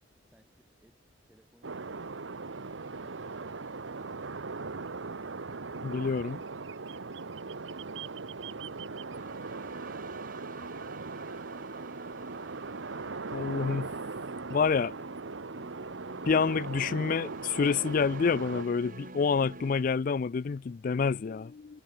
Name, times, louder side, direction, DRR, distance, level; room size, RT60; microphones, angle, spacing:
voice 1, 0.3-1.0 1.2-1.7, equal, 5° right, 5.7 m, -64 dB
sound 1, 1.6-18.6, right 4 dB, 80° right, 1.0 m, -39 dB
voice 2, 5.8-6.4 13.3-13.9 14.5-15.0 16.3-21.8, left 5 dB, 45° left, 0.4 m, -28 dB
sound 2, 9.1-19.8, right 2 dB, 45° right, 3.6 m, -48 dB
head